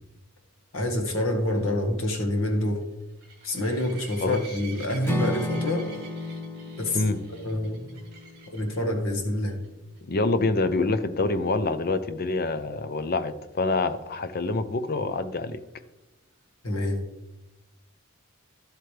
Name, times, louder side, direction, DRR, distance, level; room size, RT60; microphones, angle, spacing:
voice 1, 0.7-2.8 3.4-5.9 6.8-7.0 7.3-7.9 8.5-9.6 16.6-17.0, left 1 dB, 65° left, 3 dB, 1.7 m, -27 dB
sound 1, 0.8-8.8 9.4-9.7 10.0-10.1 10.4-10.5 14.1-14.2, right 5 dB, 50° right, 2.6 m, -48 dB
Acoustic guitar / Strum, 5.0-9.2, left 1 dB, 10° left, 0.9 m, -34 dB
voice 2, 10.0-15.6, left 3 dB, 45° left, 11 dB, 0.6 m, -26 dB
11.5 x 7.8 x 3.3 m, 1.0 s
head